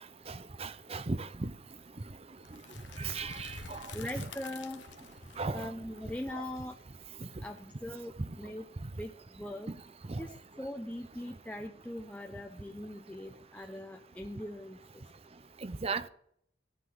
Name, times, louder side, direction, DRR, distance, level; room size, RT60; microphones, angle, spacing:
voice 1, 0.6-1.5 3.0-3.8 4.2-4.3 5.4-5.7 6.3-6.4 10.1-10.2 15.6-16.1, right 3 dB, 35° right, 0.6 m, -36 dB
sound 1, 2.4-8.2, left 5 dB, 90° left, 1.0 m, -50 dB
voice 2, 3.9-4.8 5.5-6.8 7.4-8.7 9.0-9.7 10.2-14.8, left 1 dB, 10° left, 0.6 m, -41 dB
14.0 x 6.0 x 9.4 m
head